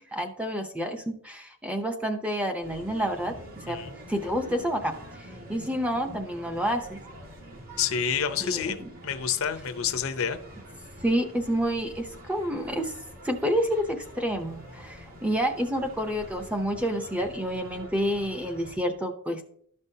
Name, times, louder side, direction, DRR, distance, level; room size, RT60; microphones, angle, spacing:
voice 1, 0.0-3.8 4.1-4.9 5.5-7.0 8.4-8.9 11.0-12.9 13.2-19.4, equal, 5° right, 0.6 m, -29 dB
sound 1, 2.6-18.8, equal, 70° right, 3.0 m, -46 dB
voice 2, 7.8-10.4, left 7 dB, 70° left, 0.6 m, -29 dB
12.5 x 5.4 x 2.7 m
head